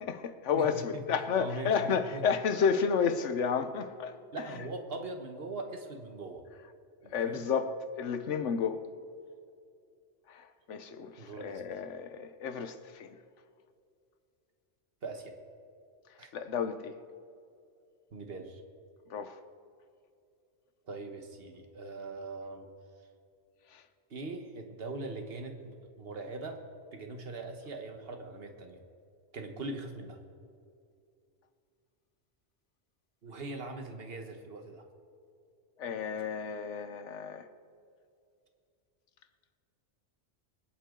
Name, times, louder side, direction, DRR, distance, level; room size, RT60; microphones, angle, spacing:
voice 1, 0.0-4.2 7.1-7.7 8.0-8.8 10.3-13.2 16.3-16.9 19.1-19.4 23.7-23.8 35.8-37.5, left 6 dB, 85° left, 1.2 m, -31 dB
voice 2, 0.5-1.1 1.4-2.3 4.3-6.4 7.0-7.4 11.2-11.7 15.0-15.3 16.2-16.3 18.1-18.6 20.8-22.7 24.1-26.6 26.9-28.8 29.3-30.2 33.2-34.9, right 3 dB, 55° right, 1.5 m, -41 dB
25.0 x 8.4 x 3.8 m
omnidirectional pair, 1.2 m